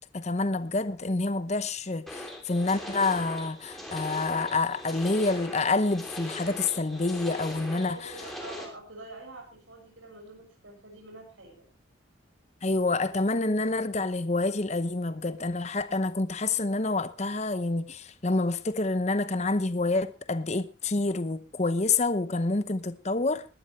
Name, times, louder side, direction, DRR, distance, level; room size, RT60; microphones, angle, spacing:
voice 1, 0.1-8.0 12.6-23.5, left 3 dB, 35° left, 0.9 m, -28 dB
sound 1, 2.1-8.6, left 1 dB, ahead, 3.3 m, -40 dB
voice 2, 7.8-11.7, right 2 dB, 80° right, 6.5 m, -46 dB
20.5 x 12.0 x 3.2 m
head